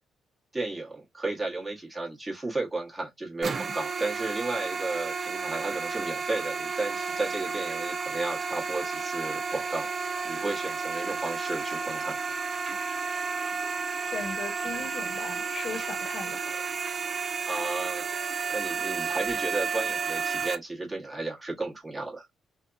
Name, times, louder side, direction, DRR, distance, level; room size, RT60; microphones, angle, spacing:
voice 1, 0.5-12.2 17.4-22.2, right 2 dB, 20° right, 1.2 m, -33 dB
sound 1, 3.4-20.5, right 5 dB, 45° right, 0.5 m, -32 dB
voice 2, 14.0-16.5, left 4 dB, 55° left, 1.1 m, -38 dB
3.3 x 2.1 x 2.5 m
supercardioid pair, 70°, 0 cm